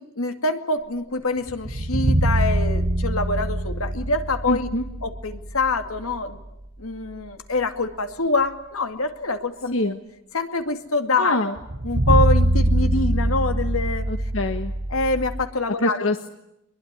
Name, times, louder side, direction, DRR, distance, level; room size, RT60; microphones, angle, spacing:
voice 1, 0.0-4.7 5.0-6.4 6.8-9.9 10.3-11.5 11.8-14.1 14.9-16.1, left 3 dB, 90° left, 8 dB, 2.4 m, -25 dB
sound 1, 1.5-6.2 6.5-6.6 11.6-15.5, right 1 dB, 40° right, 1.1 m, -23 dB
voice 2, 4.5-4.8 9.7-10.0 11.2-11.5 14.1-14.7 15.8-16.3, left 1 dB, 70° left, 6 dB, 1.5 m, -25 dB
24.5 x 22.5 x 9.8 m, 0.86 s
head